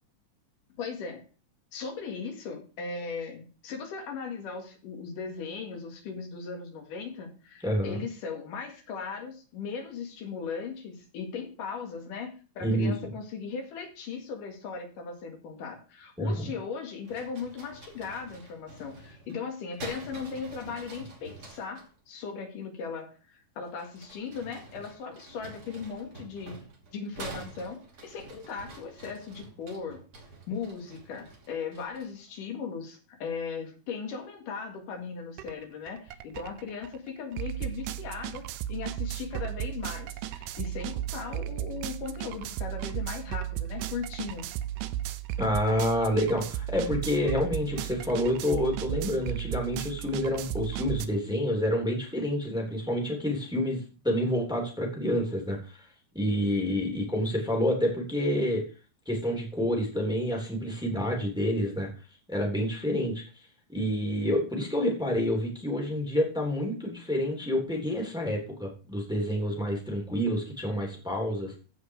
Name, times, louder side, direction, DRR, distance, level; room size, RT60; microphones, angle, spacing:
voice 1, 0.8-1.2 1.7-26.6 26.9-30.0 30.5-44.5, left 5 dB, 85° left, 4 dB, 3.6 m, -38 dB
voice 2, 7.6-8.0 12.6-12.9 16.2-16.4 45.4-55.8 56.1-58.6 59.1-61.9 62.3-63.2 63.7-71.6, equal, ahead, 0 dB, 2.7 m, -28 dB
sound 1, 17.0-21.9 23.6-32.2, right 3 dB, 45° right, 3.6 m, -47 dB
sound 2, 35.4-35.5 35.9-51.1, right 13 dB, 85° right, 2.3 m, -35 dB
15.5 x 5.1 x 4.8 m, 0.36 s
omnidirectional pair, 3.7 m